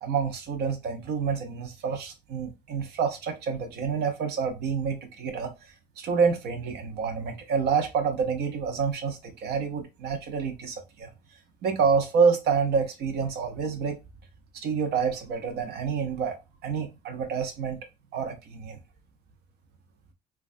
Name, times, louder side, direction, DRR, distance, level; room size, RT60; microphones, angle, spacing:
voice 1, 0.0-5.5 6.0-11.1 11.6-14.0 14.5-16.4 16.6-17.8 18.1-18.8, right 6 dB, 75° right, 0.8 m, -28 dB
3.2 x 2.3 x 2.5 m
cardioid pair, 110°, 17 cm